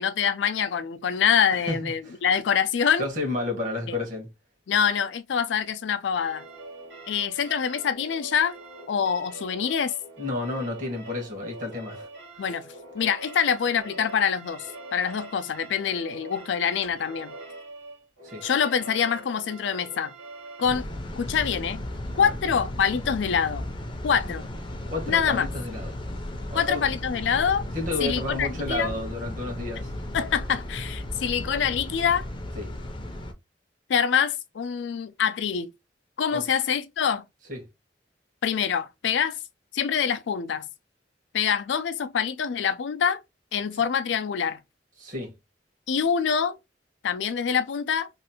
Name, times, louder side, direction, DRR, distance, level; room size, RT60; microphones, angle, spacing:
voice 1, 0.0-3.0 3.9-4.0 4.7-6.5 7.1-8.6 8.9-9.9 12.4-17.3 18.4-20.1 20.6-20.9 21.2-21.8 22.2-23.7 24.0-24.5 25.1-25.5 26.5-27.6 28.0-28.9 30.1-32.2 33.9-35.7 36.2-37.2 38.4-39.4 39.7-40.7 41.3-43.2 43.5-44.6 45.9-46.6 47.0-48.1, left 7 dB, 80° left, 0.4 m, -25 dB
voice 2, 1.7-2.2 3.0-4.3 10.2-12.1 18.2-18.4 22.1-22.3 24.9-25.9 26.5-26.8 27.7-29.9 32.6-32.7 36.3-36.4 37.5-37.6 45.0-45.3, left 2 dB, 50° right, 1.4 m, -31 dB
sound 1, 6.1-20.7, right 2 dB, 85° right, 1.9 m, -43 dB
sound 2, 20.6-33.3, left 1 dB, 30° left, 0.5 m, -35 dB
3.1 x 2.5 x 2.8 m
head